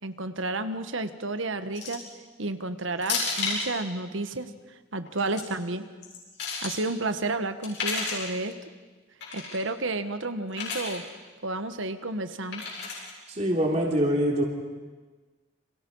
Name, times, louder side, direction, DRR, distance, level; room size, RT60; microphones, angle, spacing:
voice 1, 0.0-2.0 2.4-4.5 4.9-5.8 6.6-8.5 9.3-11.0 11.4-12.6, right 2 dB, 80° right, 9 dB, 1.6 m, -31 dB
sound 1, 1.7-2.1 3.0-3.7 5.0-5.4 6.0-6.8 7.6-8.3 9.2-9.6 10.5-11.0 12.5-13.1, left 4 dB, 60° left, 7.7 m, -31 dB
voice 2, 13.3-14.4, equal, 35° right, -1 dB, 3.6 m, -24 dB
29.5 x 26.5 x 5.6 m, 1.3 s
head